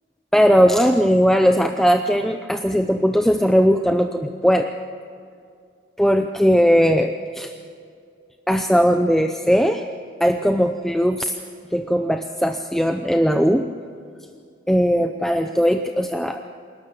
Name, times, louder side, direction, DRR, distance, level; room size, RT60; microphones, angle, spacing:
voice 1, 0.3-4.7 6.0-7.5 8.5-9.9 10.2-11.3 11.7-13.7 14.7-16.4, equal, ahead, 6 dB, 0.6 m, -18 dB
27.5 x 12.5 x 7.6 m, 2.3 s
head